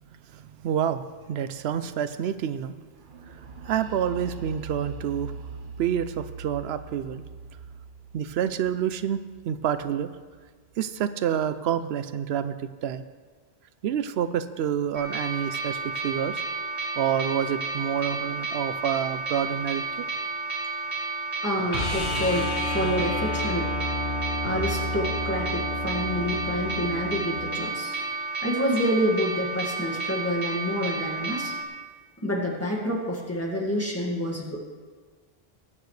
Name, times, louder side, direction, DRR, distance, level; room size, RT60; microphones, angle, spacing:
voice 1, 0.3-1.0 1.3-2.8 3.7-5.3 5.8-7.2 8.1-10.1 10.8-12.6 12.8-13.0 13.8-16.4 17.0-20.1, right 9 dB, 85° right, 12 dB, 0.8 m, -28 dB
sound 1, 3.1-10.8, right 4 dB, 55° right, 1.0 m, -42 dB
sound 2, 14.9-31.6, right 3 dB, 35° right, 2.0 m, -32 dB
voice 2, 21.4-23.7 24.4-28.0 28.4-31.5 32.2-34.7, equal, 15° left, -2 dB, 1.9 m, -28 dB
sound 3, 21.7-27.7 30.2-30.3, left 1 dB, 55° left, 1.5 m, -31 dB
21.0 x 8.8 x 3.2 m, 1.5 s
omnidirectional pair, 1.0 m